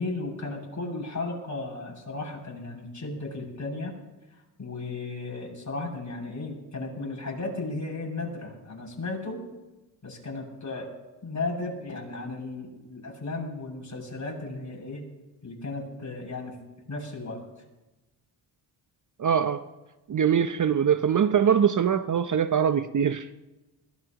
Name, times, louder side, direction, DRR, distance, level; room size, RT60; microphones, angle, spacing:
voice 1, 0.0-3.9 4.6-9.4 10.0-10.9 11.2-15.0 15.4-16.6 16.9-17.4, left 3 dB, 35° left, 7.0 m, -35 dB
voice 2, 19.2-19.7 20.1-23.4, right 8 dB, 40° right, 0.8 m, -23 dB
20.5 x 18.0 x 3.0 m
supercardioid pair, 55°, 48 cm